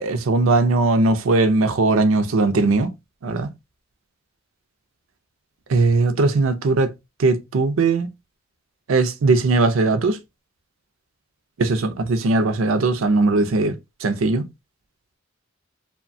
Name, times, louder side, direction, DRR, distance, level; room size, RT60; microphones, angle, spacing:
voice 1, 0.0-2.9 3.2-3.5 5.7-6.9 7.2-8.1 8.9-10.2 11.6-14.5, right 3 dB, 85° right, 0.5 m, -19 dB
2.9 x 2.2 x 2.6 m
head